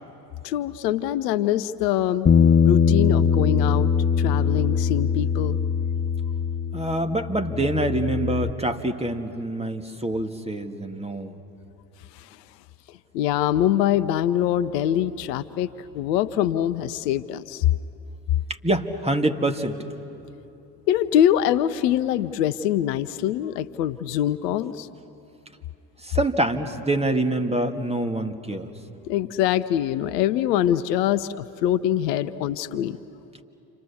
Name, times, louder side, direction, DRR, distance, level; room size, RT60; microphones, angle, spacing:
voice 1, 0.4-2.3 2.6-3.9 4.2-5.6 12.2-12.3 13.1-17.7 20.9-24.9 29.1-33.0, left 11 dB, 75° left, 15 dB, 0.8 m, -24 dB
Bass guitar, 2.3-8.5, left 6 dB, 20° left, 0.7 m, -21 dB
voice 2, 6.7-11.4 18.6-19.8 26.0-28.7, right 1 dB, 10° right, 5 dB, 1.9 m, -25 dB
29.5 x 26.0 x 7.2 m, 2.8 s
hypercardioid pair, 55°, 49 cm